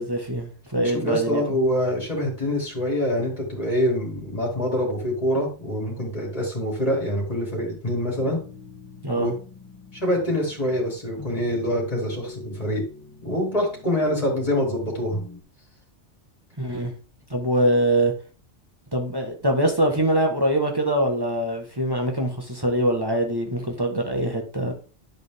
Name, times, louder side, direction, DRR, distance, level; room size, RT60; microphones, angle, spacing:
voice 1, 0.0-1.4 9.0-9.3 16.6-16.9 17.3-18.1 18.9-24.7, right 1 dB, 20° right, 2 dB, 1.6 m, -23 dB
voice 2, 0.8-8.4 9.2-9.3 9.9-12.8 13.2-15.2 16.7-16.9, equal, 30° left, -2 dB, 3.6 m, -25 dB
sound 1, 8.2-15.4, left 4 dB, 15° left, 2.9 m, -44 dB
11.5 x 5.4 x 3.7 m, 0.38 s
omnidirectional pair, 1.2 m